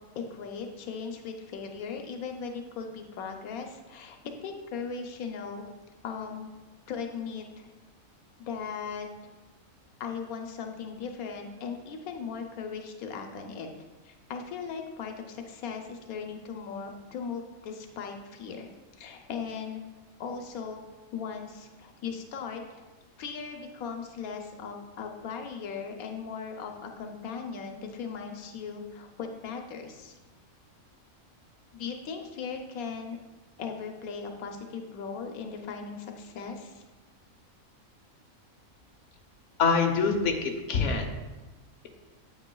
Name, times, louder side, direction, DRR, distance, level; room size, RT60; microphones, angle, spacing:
voice 1, 0.2-5.7 6.0-6.5 6.9-7.7 8.4-9.1 10.0-13.7 14.0-19.8 20.2-20.8 21.1-22.8 23.2-30.1 31.7-33.2 33.6-36.8, left 6 dB, 90° left, 4 dB, 1.2 m, -38 dB
voice 2, 39.6-41.1, left 5 dB, 60° left, 3 dB, 1.2 m, -25 dB
8.6 x 8.4 x 2.3 m, 1.2 s
omnidirectional pair, 1.5 m